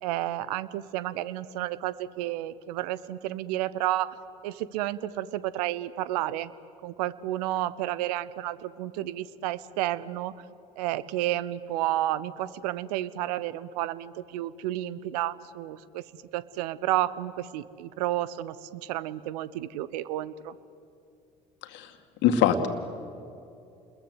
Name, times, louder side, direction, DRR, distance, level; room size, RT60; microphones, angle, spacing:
voice 1, 0.0-4.2 4.4-6.5 6.8-10.3 10.8-16.0 16.3-20.5, right 14 dB, 70° right, 18 dB, 0.9 m, -31 dB
voice 2, 22.2-22.7, left 9 dB, 60° left, 7 dB, 2.2 m, -23 dB
30.0 x 21.5 x 8.2 m, 2.6 s
figure-of-eight pair, 60°, 21 cm